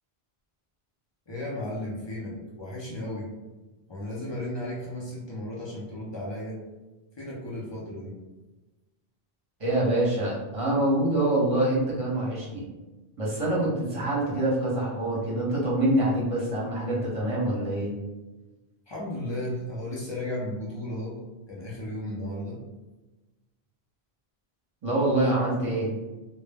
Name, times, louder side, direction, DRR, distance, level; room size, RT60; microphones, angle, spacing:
voice 1, 1.3-3.3 3.9-6.6 7.2-8.1 18.9-21.2 21.5-22.6, left 1 dB, 35° left, -4 dB, 0.4 m, -34 dB
voice 2, 9.6-12.6 13.2-17.9 24.8-25.9, right 1 dB, 35° right, -4 dB, 0.8 m, -25 dB
2.1 x 2.0 x 3.3 m, 1.1 s
omnidirectional pair, 1.0 m